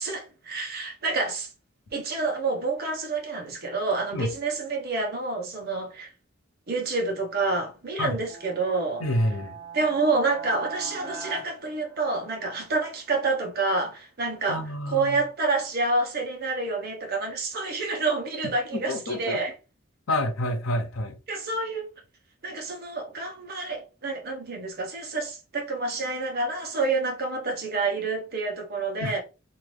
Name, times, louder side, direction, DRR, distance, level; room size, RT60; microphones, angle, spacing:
voice 1, 0.0-1.5 1.9-6.1 6.7-9.0 9.7-14.6 14.9-19.5 21.3-21.9 22.4-29.2, right 3 dB, 50° right, 1.0 m, -28 dB
sound 1, 8.2-12.6, right 5 dB, 15° right, 1.1 m, -41 dB
voice 2, 9.0-9.6 14.5-15.2 18.7-19.4 20.1-21.2 29.0-29.2, left 1 dB, 90° left, 0.7 m, -28 dB
2.7 x 2.6 x 3.2 m
head